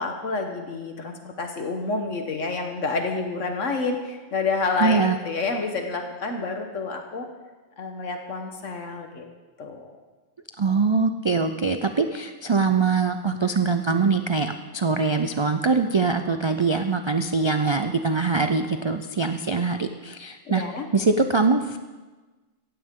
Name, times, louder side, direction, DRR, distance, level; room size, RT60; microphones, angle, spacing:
voice 1, 0.0-7.2 7.8-9.3 9.6-9.9 20.5-20.9, left 3 dB, 75° left, 4 dB, 1.6 m, -29 dB
voice 2, 4.8-5.2 10.6-20.6 20.9-21.8, right 4 dB, 50° right, 7 dB, 0.3 m, -23 dB
16.0 x 16.0 x 3.7 m, 1.3 s
omnidirectional pair, 1.3 m